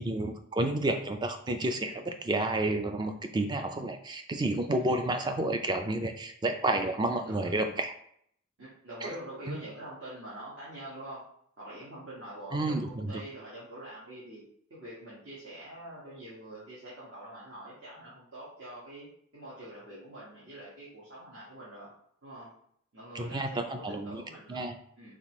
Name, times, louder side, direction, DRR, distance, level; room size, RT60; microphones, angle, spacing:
voice 1, 0.0-7.9 9.0-9.1 9.5-9.6 12.5-13.1 23.1-24.2 24.5-24.8, right 2 dB, 20° right, 6 dB, 0.4 m, -30 dB
voice 2, 6.7-7.6 8.6-11.2 11.6-14.4 14.7-21.9 22.2-22.5 22.9-24.6 25.0-25.2, right 1 dB, 60° right, -9 dB, 1.6 m, -45 dB
4.1 x 3.7 x 3.0 m, 0.66 s
head